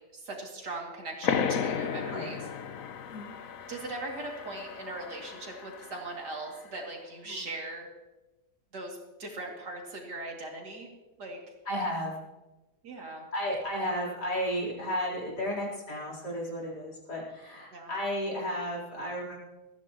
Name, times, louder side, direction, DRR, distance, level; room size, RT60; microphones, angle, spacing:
voice 1, 0.1-2.4 3.7-7.9 8.7-10.9 11.2-11.4 12.8-13.2 17.7-17.9, right 2 dB, 80° right, 0 dB, 3.3 m, -40 dB
sound 1, 1.2-6.5, left 7 dB, 60° left, 1.2 m, -34 dB
voice 2, 11.6-12.2 13.3-19.4, equal, 75° left, -3 dB, 4.8 m, -33 dB
19.5 x 14.5 x 3.1 m, 1.1 s
omnidirectional pair, 1.8 m